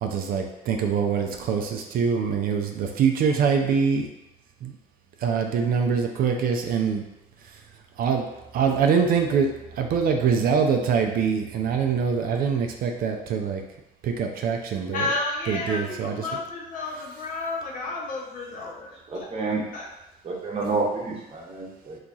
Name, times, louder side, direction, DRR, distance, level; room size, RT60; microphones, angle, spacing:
voice 1, 0.0-4.1 4.6-4.7 5.2-7.0 8.0-8.3 8.5-13.6 14.0-15.1 15.5-16.4, right 6 dB, 60° right, 3 dB, 0.4 m, -24 dB
voice 2, 14.9-18.9 19.7-19.9, left 3 dB, 50° left, -1 dB, 0.8 m, -31 dB
voice 3, 19.1-19.6 20.2-22.0, right 3 dB, 35° right, -2 dB, 0.9 m, -29 dB
2.9 x 2.3 x 3.9 m, 0.93 s
cardioid pair, 110°, 17 cm